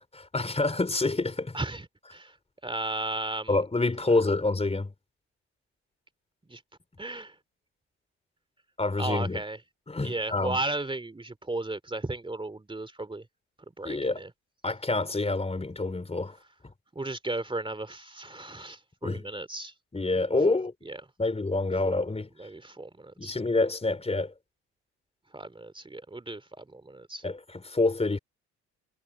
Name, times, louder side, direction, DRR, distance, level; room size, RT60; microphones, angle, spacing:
voice 1, 0.1-1.6 3.5-4.9 8.8-9.4 9.9-10.6 13.8-14.2 14.6-16.3 19.0-19.2 19.9-20.7 21.2-22.3 23.2-24.3 27.2-28.2, left 3 dB, 20° left, 4.1 m, -27 dB
voice 2, 1.5-1.9 2.1-2.3 2.6-3.6 6.5-6.6 7.0-7.3 9.0-9.6 10.0-13.2 13.8-14.3 16.9-19.7 20.5-20.6 20.9-21.0 21.8-21.9 22.4-23.3 25.3-27.2, right 2 dB, 15° right, 2.9 m, -35 dB
hypercardioid pair, 55°, 35 cm